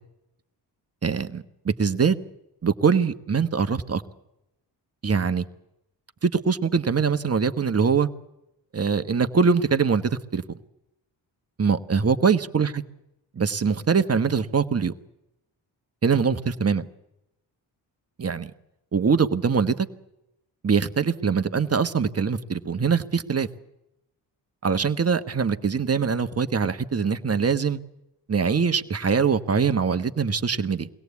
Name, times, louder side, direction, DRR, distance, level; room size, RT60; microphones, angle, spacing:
voice 1, 1.0-2.2 2.6-4.0 5.0-5.5 6.2-8.1 8.7-10.4 11.6-12.8 13.3-14.9 16.0-16.9 18.2-18.5 18.9-19.9 20.6-23.5 24.6-27.8 28.3-30.9, right 5 dB, 30° right, 9 dB, 1.3 m, -23 dB
23.0 x 17.5 x 8.4 m, 0.87 s
cardioid pair, 80°, 45 cm